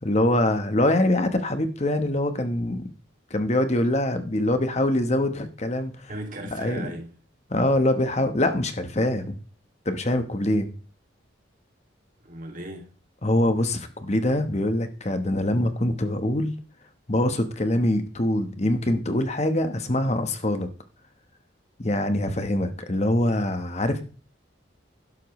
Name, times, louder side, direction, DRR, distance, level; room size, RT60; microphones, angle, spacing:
voice 1, 0.0-2.9 3.3-6.1 6.4-6.9 7.5-9.3 9.8-10.7 13.2-16.5 17.1-20.7 21.8-24.0, left 1 dB, 35° left, 1.1 m, -24 dB
voice 2, 6.1-7.1 12.2-12.9 14.0-14.1, right 1 dB, 45° right, 2.4 m, -37 dB
12.0 x 11.0 x 3.2 m
head